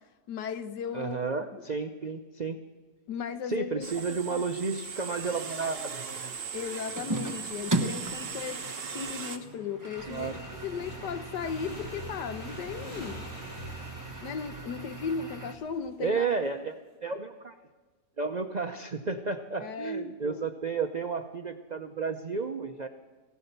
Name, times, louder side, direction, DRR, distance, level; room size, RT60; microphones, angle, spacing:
voice 1, 0.3-1.2 1.5-1.6 3.1-4.4 6.5-8.6 8.9-10.4 10.6-13.3 14.2-16.3 19.6-20.5, left 6 dB, 80° left, 10 dB, 1.5 m, -36 dB
voice 2, 0.9-2.6 3.5-6.3 10.1-10.3 16.0-17.5 18.2-22.9, right 4 dB, 80° right, 6 dB, 0.4 m, -32 dB
sound 1, 3.8-9.4, right 5 dB, 40° right, 1.1 m, -38 dB
sound 2, 7.0-15.5, right 2 dB, 15° right, 0.9 m, -37 dB
Motorcycle / Engine, 10.0-16.3, right 1 dB, 30° left, 5.5 m, -45 dB
16.5 x 11.5 x 6.8 m, 1.3 s
omnidirectional pair, 1.8 m